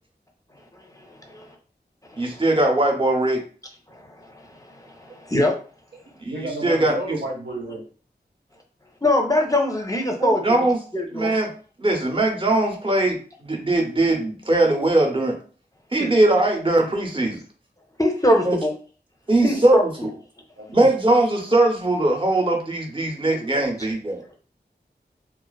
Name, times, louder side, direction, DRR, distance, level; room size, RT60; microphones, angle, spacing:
voice 1, 2.2-3.4 6.2-6.9 10.2-10.8 11.1-11.5 11.8-15.3 15.9-17.4 18.4-18.6 19.3-20.1 20.7-24.2, right 2 dB, 30° right, 0 dB, 0.7 m, -20 dB
voice 2, 6.3-7.8 19.4-19.6 20.6-20.7 23.3-23.6, right 1 dB, 75° right, -1 dB, 0.7 m, -31 dB
voice 3, 9.0-10.4 10.9-11.3 16.0-16.1 18.0-18.7 19.4-19.8, left 1 dB, 20° left, 1 dB, 0.5 m, -21 dB
2.4 x 2.3 x 2.2 m, 0.40 s
wide cardioid pair, 40°, 18 cm